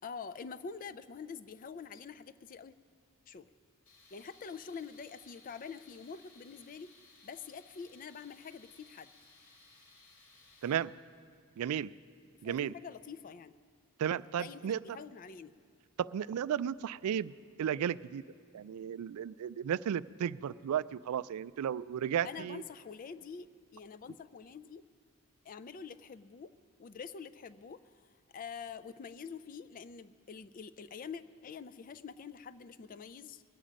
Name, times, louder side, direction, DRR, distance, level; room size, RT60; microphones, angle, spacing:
voice 1, 0.0-2.8 3.3-3.5 4.1-6.9 7.2-9.1 12.4-13.6 14.4-15.5 22.2-23.5 23.7-24.8 25.4-26.5 26.8-28.0 28.3-33.4, left 6 dB, 40° left, 14 dB, 0.3 m, -46 dB
Tools, 3.9-10.8, left 3 dB, 85° left, 2.3 m, -61 dB
voice 2, 11.6-11.9 12.4-12.7 14.0-14.8 16.0-17.3 17.6-18.2 18.5-22.6, right 9 dB, 80° right, 17 dB, 0.3 m, -34 dB
21.0 x 8.7 x 5.1 m, 2.1 s
head